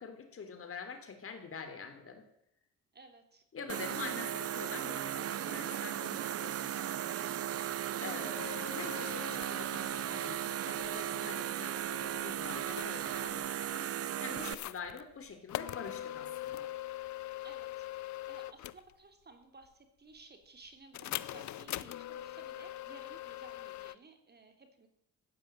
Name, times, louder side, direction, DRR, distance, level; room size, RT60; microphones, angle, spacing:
voice 1, 0.0-2.3 3.5-7.2 8.0-13.9 14.2-16.7, left 5 dB, 45° left, 6 dB, 3.5 m, -46 dB
voice 2, 2.9-3.4 17.4-24.9, right 3 dB, 35° right, 6 dB, 3.2 m, -56 dB
sound 1, 3.7-14.5, right 11 dB, 50° right, 0.7 m, -36 dB
sound 2, 8.4-10.4 10.7-11.2 11.7-13.5 14.3-15.0 15.5-18.9 20.9-23.9, left 14 dB, 70° left, 0.8 m, -42 dB
15.0 x 9.7 x 8.9 m, 0.75 s
cardioid pair, 90°, 30 cm